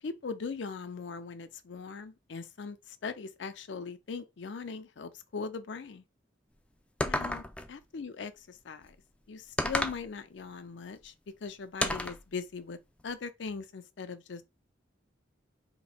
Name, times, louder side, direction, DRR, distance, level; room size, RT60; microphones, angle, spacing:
voice 1, 0.0-6.0 7.0-9.0 9.3-12.8 13.0-14.4, left 5 dB, 70° left, 0.5 m, -40 dB
sound 1, 7.0-7.7 9.6-10.0 11.8-12.2, left 1 dB, 5° left, 0.3 m, -31 dB
2.9 x 2.6 x 4.2 m
head